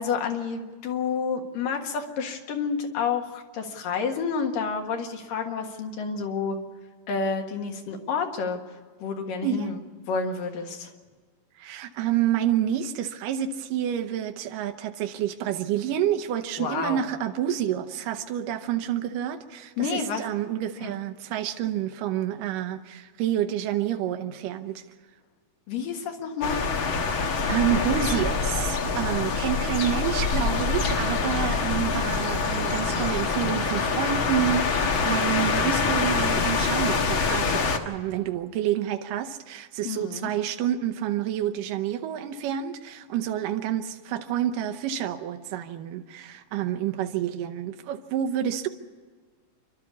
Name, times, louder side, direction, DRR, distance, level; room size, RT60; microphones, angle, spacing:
voice 1, 0.0-6.6 7.1-8.6 9.0-9.8 10.1-10.9 16.6-17.0 19.8-20.2 20.8-20.9 25.7-26.6 39.8-40.3, left 5 dB, 80° left, 3.3 m, -29 dB
voice 2, 11.6-24.8 27.5-48.7, right 10 dB, 80° right, 2.5 m, -28 dB
sound 1, 26.4-37.8, left 4 dB, 50° left, 1.6 m, -25 dB
28.0 x 12.5 x 8.3 m
omnidirectional pair, 3.9 m